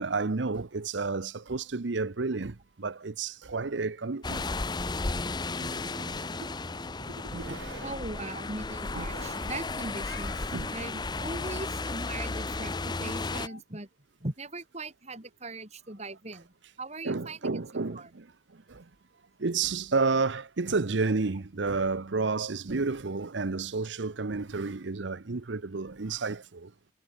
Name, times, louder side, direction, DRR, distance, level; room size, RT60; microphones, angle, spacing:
voice 1, 0.0-4.4 5.6-6.5 7.1-7.9 8.9-9.5 10.5-10.7 17.0-18.3 18.7-18.8 19.4-26.7, right 4 dB, 75° right, 0.9 m, -31 dB
sound 1, 4.2-13.5, left 3 dB, 25° left, 0.7 m, -34 dB
voice 2, 7.8-10.4 10.7-13.9 14.2-18.1, right 2 dB, 35° right, 4.0 m, -40 dB
Meow, 9.6-10.7 12.5-13.6, left 5 dB, 60° left, 5.1 m, -50 dB
head